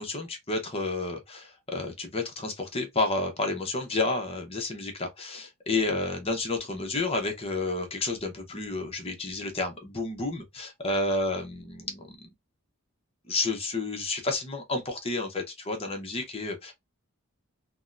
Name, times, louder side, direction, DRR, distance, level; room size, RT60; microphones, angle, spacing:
voice 1, 0.0-12.3 13.3-16.7, left 2 dB, 25° left, 0.8 m, -30 dB
3.5 x 2.2 x 2.5 m
head